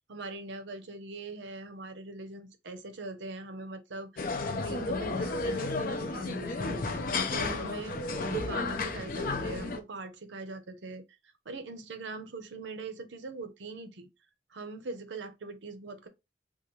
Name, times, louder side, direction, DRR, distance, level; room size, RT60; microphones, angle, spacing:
voice 1, 0.1-7.0 7.3-11.0 11.5-14.1 14.5-16.1, right 3 dB, 75° right, 0.6 m, -41 dB
sound 1, 4.2-9.8, left 3 dB, 45° left, 0.5 m, -32 dB
3.8 x 2.4 x 3.0 m
head